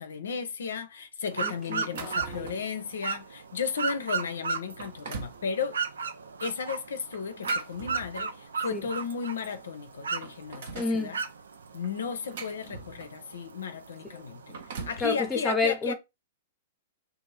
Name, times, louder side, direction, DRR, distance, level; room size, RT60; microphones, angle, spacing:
voice 1, 0.0-5.8 6.4-11.2 11.7-15.9, left 6 dB, 80° left, 0.4 m, -34 dB
sound 1, 1.3-15.4, right 5 dB, 85° right, 0.4 m, -36 dB
voice 2, 1.4-2.6 8.7-8.9 10.7-11.2 14.1-14.2 15.0-15.9, left 3 dB, 10° left, 0.7 m, -30 dB
sound 2, 1.7-2.7 3.3-3.5 4.1-4.2 4.6-5.4 7.1-8.5 9.5-9.6 9.9-11.0 11.8-13.3 14.3-15.1, right 5 dB, 65° right, 0.7 m, -42 dB
2.5 x 2.4 x 3.2 m
hypercardioid pair, 120°, 0 cm